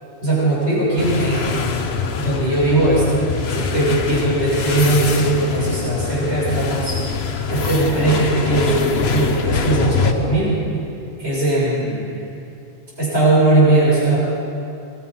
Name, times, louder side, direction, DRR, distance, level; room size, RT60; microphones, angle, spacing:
voice 1, 0.2-1.7 2.2-3.2 3.5-7.0 7.4-10.5 11.2-12.2 13.0-14.3, right 2 dB, 75° right, -7 dB, 7.6 m, -19 dB
sound 1, 1.0-10.1, left 5 dB, 65° left, 1.3 m, -24 dB
26.0 x 21.5 x 5.6 m, 2.7 s
omnidirectional pair, 1.1 m